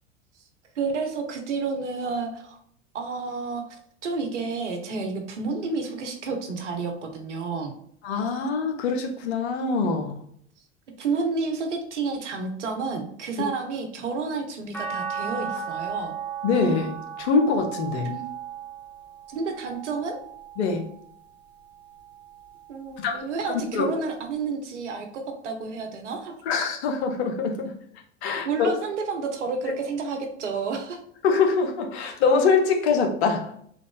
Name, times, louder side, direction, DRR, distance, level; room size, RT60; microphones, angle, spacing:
voice 1, 0.7-2.6 2.9-7.7 11.0-16.1 18.0-18.3 19.3-20.2 22.7-26.3 28.2-31.0, right 4 dB, 80° right, 4 dB, 0.9 m, -30 dB
voice 2, 8.0-10.2 16.4-18.1 20.6-20.9 23.0-23.2 23.7-23.9 26.5-27.7 28.2-28.7 31.2-33.5, left 4 dB, 65° left, 4 dB, 0.9 m, -24 dB
sound 1, 14.7-21.0 21.6-23.0 24.4-24.5, right 7 dB, 5° left, 0.9 m, -36 dB
3.6 x 2.5 x 3.7 m, 0.66 s
hypercardioid pair, 90°, 35 cm